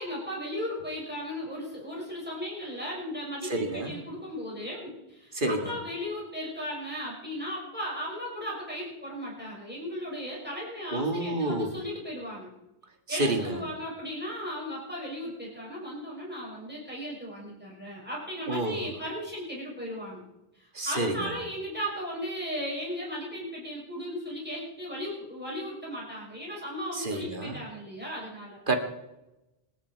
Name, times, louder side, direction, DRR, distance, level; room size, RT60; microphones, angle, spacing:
voice 1, 0.0-12.5 13.1-20.2 20.5-28.6, equal, 10° right, -4 dB, 6.4 m, -36 dB
voice 2, 3.5-3.9 5.3-5.7 10.9-11.7 13.1-13.6 18.5-18.8 20.8-21.3 27.0-27.6 28.7-28.8, right 2 dB, 50° right, 5 dB, 2.1 m, -29 dB
27.5 x 10.0 x 4.7 m, 0.97 s
omnidirectional pair, 1.1 m